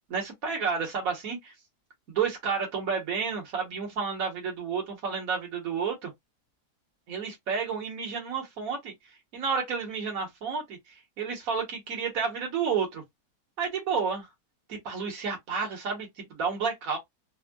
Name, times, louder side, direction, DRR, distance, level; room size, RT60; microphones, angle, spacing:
voice 1, 0.1-1.5 2.1-6.1 7.1-8.9 9.3-10.8 11.2-13.0 13.6-14.3 14.7-17.0, right 5 dB, 60° right, 1.5 m, -31 dB
3.5 x 2.1 x 2.2 m
omnidirectional pair, 1.7 m